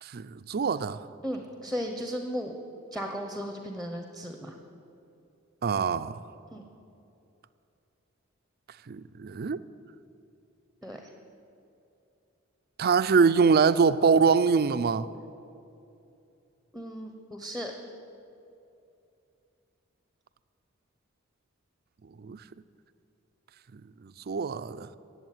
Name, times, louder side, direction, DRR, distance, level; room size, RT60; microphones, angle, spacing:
voice 1, 0.0-1.1 5.6-6.2 8.9-9.6 12.8-15.1 22.2-22.4 23.7-24.9, right 5 dB, 50° right, 0.5 m, -24 dB
voice 2, 1.2-2.5 2.9-4.5 6.5-6.6 10.8-11.0 16.7-17.7, equal, ahead, 0.9 m, -35 dB
16.0 x 8.0 x 9.2 m
head